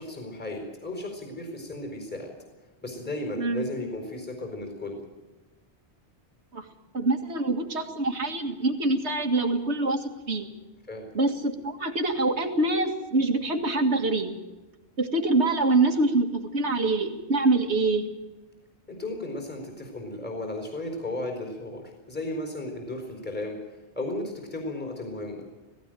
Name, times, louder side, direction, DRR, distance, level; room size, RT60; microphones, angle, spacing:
voice 1, 0.0-2.3 2.8-5.0 10.9-11.1 18.9-25.4, left 2 dB, 10° left, 3 dB, 4.2 m, -35 dB
voice 2, 6.9-10.5 11.1-14.4 15.0-18.1, right 2 dB, 80° right, 5 dB, 2.2 m, -25 dB
18.0 x 16.5 x 9.0 m, 1.2 s
omnidirectional pair, 1.1 m